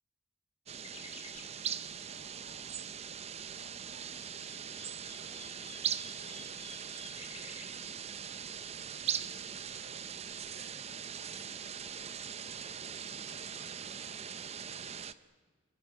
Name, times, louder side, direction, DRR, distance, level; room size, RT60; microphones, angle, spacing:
sound 1, 0.7-1.5 3.9-7.7, left 5 dB, 35° left, 2.9 m, -52 dB
sound 2, 0.7-15.1, right 8 dB, 35° right, 0.7 m, -41 dB
voice 1, 2.0-2.7 3.5-6.7 7.1-9.9 10.3-14.3, right 1 dB, 85° right, 3 dB, 6.4 m, -61 dB
29.0 x 15.0 x 9.4 m, 1.5 s
head